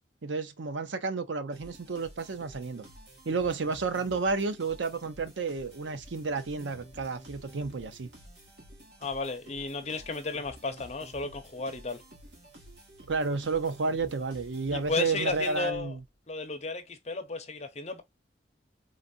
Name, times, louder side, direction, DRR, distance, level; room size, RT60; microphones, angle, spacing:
voice 1, 0.2-2.9 3.3-8.1 13.1-16.0, right 4 dB, 85° right, 0.6 m, -31 dB
sound 1, 1.5-16.1, right 1 dB, 70° right, 1.6 m, -51 dB
voice 2, 9.0-12.0 14.7-16.0 16.3-18.0, left 3 dB, 35° left, 0.7 m, -34 dB
4.0 x 2.6 x 2.6 m
head